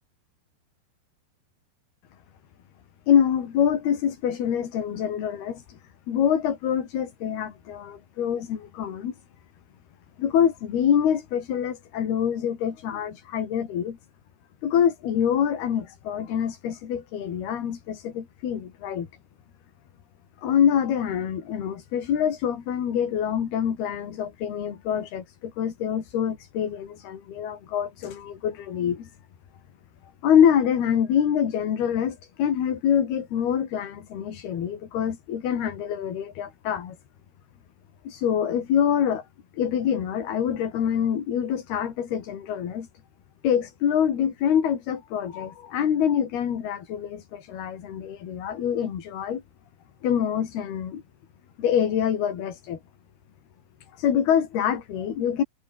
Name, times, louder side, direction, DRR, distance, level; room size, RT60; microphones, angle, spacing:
voice 1, 3.1-5.8 6.1-9.1 10.2-14.0 14.6-19.1 20.4-29.1 30.2-37.0 38.0-39.3 39.5-42.9 43.4-49.4 50.0-51.0 51.6-52.8 53.9-55.4, left 9 dB, 75° left, 4.8 m, -25 dB
omnidirectional pair, 4.6 m